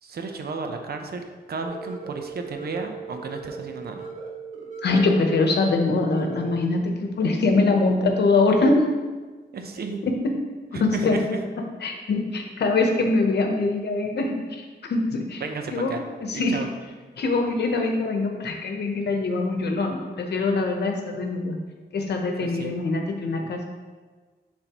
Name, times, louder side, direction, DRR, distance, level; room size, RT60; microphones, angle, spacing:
voice 1, 0.0-4.1 9.5-10.0 10.7-11.4 15.4-16.0 16.3-16.7 22.4-22.7 23.4-23.6, right 4 dB, 70° right, 4 dB, 0.8 m, -33 dB
sound 1, 1.6-6.6, right 5 dB, 45° right, 1.5 m, -38 dB
voice 2, 4.8-8.9 10.0-10.4 10.8-11.2 11.8-15.4 15.7-16.0 16.3-16.6 17.2-21.6 21.9-23.6, left 3 dB, 85° left, 3 dB, 0.9 m, -23 dB
10.5 x 3.8 x 3.0 m, 1.4 s
wide cardioid pair, 105°, 17 cm